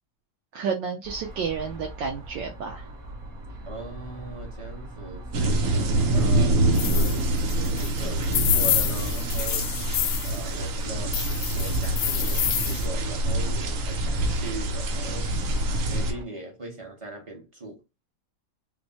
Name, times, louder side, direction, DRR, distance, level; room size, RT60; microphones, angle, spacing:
voice 1, 0.5-2.8 6.2-6.3, right 6 dB, 70° right, 1.3 m, -31 dB
sound 1, 1.0-16.2, equal, 50° right, 1.3 m, -38 dB
voice 2, 3.6-5.8 6.1-11.2 11.5-15.5 15.8-17.8, right 2 dB, 30° right, 0.6 m, -40 dB
sound 2, 5.3-16.1, right 1 dB, 90° right, 0.7 m, -25 dB
sound 3, 6.7-10.4 11.1-12.9, left 11 dB, 85° left, 1.5 m, -28 dB
4.4 x 2.1 x 2.8 m
omnidirectional pair, 2.3 m